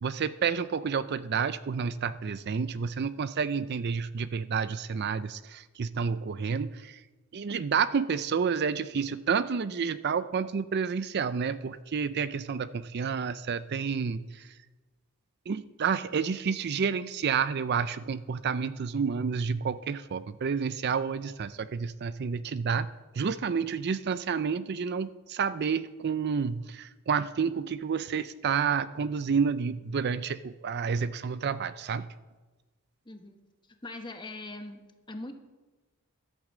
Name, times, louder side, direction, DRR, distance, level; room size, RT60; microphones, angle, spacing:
voice 1, 0.0-7.0 7.3-14.5 15.5-22.9 23.1-32.1, right 6 dB, 50° right, 14 dB, 0.4 m, -30 dB
voice 2, 33.0-33.4 33.7-34.8 35.1-35.4, left 2 dB, 20° left, 6 dB, 1.1 m, -41 dB
12.0 x 8.7 x 7.3 m, 1.2 s
head